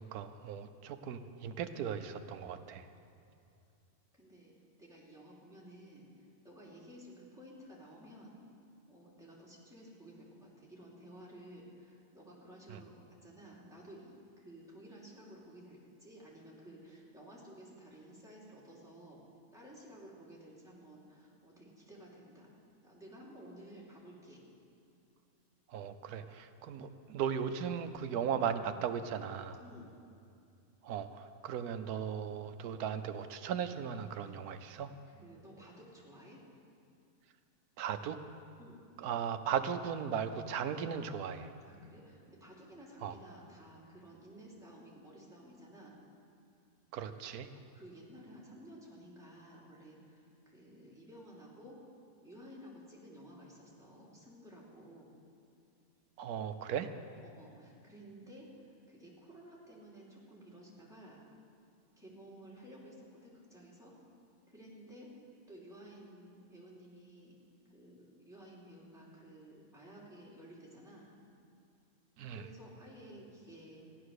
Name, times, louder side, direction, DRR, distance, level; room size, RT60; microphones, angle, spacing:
voice 1, 0.0-2.9 12.7-12.8 25.7-29.6 30.8-34.9 37.8-38.2 39.0-41.5 43.0-43.1 46.9-47.5 56.2-56.9 72.2-72.4, right 8 dB, 85° right, 9 dB, 1.2 m, -37 dB
voice 2, 4.1-4.5 4.8-8.3 8.9-12.9 13.2-19.2 19.5-22.5 22.8-24.4 29.6-29.9 34.2-34.4 35.0-36.4 38.6-38.8 41.6-46.0 47.7-51.8 52.2-55.1 57.2-61.2 62.0-63.9 64.5-65.1 65.5-67.4 67.7-71.1 72.3-73.9, equal, ahead, -6 dB, 2.9 m, -54 dB
14.5 x 11.0 x 6.5 m, 2.5 s
omnidirectional pair, 1.6 m